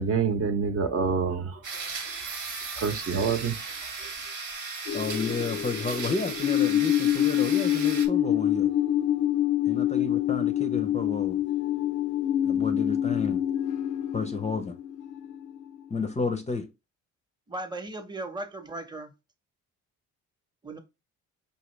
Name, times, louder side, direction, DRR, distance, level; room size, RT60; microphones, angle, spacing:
voice 1, 0.0-1.9 2.8-3.6 4.0-4.1, right 5 dB, 50° right, 0.8 m, -27 dB
sound 1, 1.6-8.1, right 4 dB, 85° right, 1.2 m, -36 dB
sound 2, 4.9-15.8, left 11 dB, 85° left, 0.5 m, -26 dB
voice 2, 4.9-8.7 9.7-11.4 12.4-13.4 14.1-14.8 15.9-16.7, left 4 dB, 25° left, 0.5 m, -31 dB
voice 3, 17.5-19.1 20.6-20.8, right 2 dB, 15° right, 0.8 m, -37 dB
5.1 x 2.7 x 3.1 m
cardioid pair, 90°, 30 cm